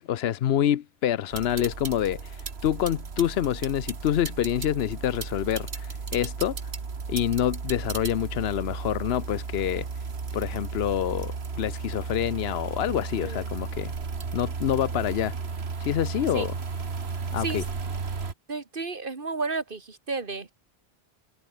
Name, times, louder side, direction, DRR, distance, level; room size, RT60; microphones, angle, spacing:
voice 1, 0.0-6.7 7.1-9.9 10.3-13.9 14.3-15.3 15.8-16.5 17.3-17.6, left 10 dB, 80° left, 0.9 m, -27 dB
sound 1, 1.3-18.3, right 5 dB, 85° right, 2.0 m, -34 dB
voice 2, 18.5-20.5, right 4 dB, 55° right, 2.2 m, -32 dB
open air
omnidirectional pair, 1.0 m